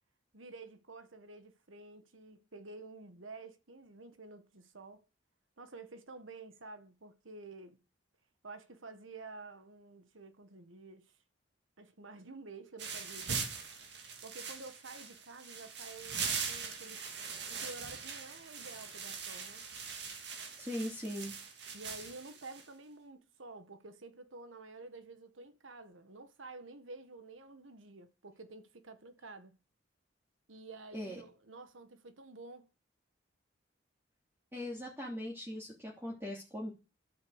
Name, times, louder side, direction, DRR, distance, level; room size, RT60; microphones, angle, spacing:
voice 1, 0.3-5.1 5.6-7.8 8.4-11.2 11.8-13.4 13.9-19.7 21.7-29.6 30.5-32.7, right 3 dB, 85° right, 1.6 m, -50 dB
sound 1, 12.8-22.7, right 5 dB, 60° right, 2.7 m, -41 dB
voice 2, 20.6-21.4 30.9-31.2 34.5-36.7, left 1 dB, 10° right, 2.9 m, -40 dB
12.5 x 8.1 x 8.1 m
head